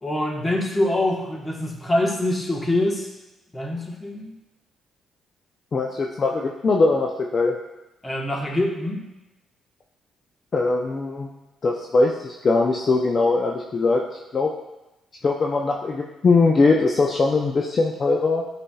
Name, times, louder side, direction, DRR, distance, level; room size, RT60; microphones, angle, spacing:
voice 1, 0.0-3.1 3.5-4.3 8.0-9.1, left 1 dB, 20° left, 0 dB, 1.2 m, -24 dB
voice 2, 5.7-7.6 10.5-11.3 11.6-14.5 15.2-18.4, left 3 dB, 40° left, 0 dB, 0.5 m, -21 dB
9.9 x 4.3 x 2.3 m, 0.99 s
cardioid pair, 90°, 0 cm